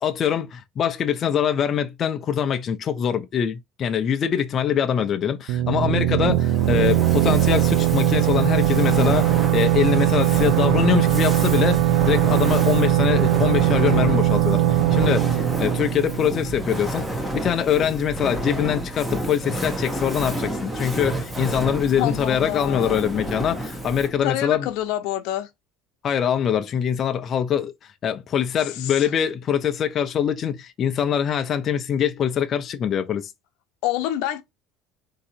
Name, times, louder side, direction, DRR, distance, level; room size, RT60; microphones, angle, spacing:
voice 1, 0.0-24.7 26.0-27.7 28.0-33.3, left 8 dB, 35° left, 0.5 m, -23 dB
sound 1, 5.5-17.0, right 14 dB, 75° right, 0.4 m, -20 dB
Fire, 6.3-24.3, right 1 dB, 5° right, 0.9 m, -30 dB
voice 2, 22.0-23.0 24.2-25.5 28.8-29.1 33.8-34.4, left 13 dB, 75° left, 0.7 m, -27 dB
3.8 x 2.7 x 4.2 m
cardioid pair, 145°, 0 cm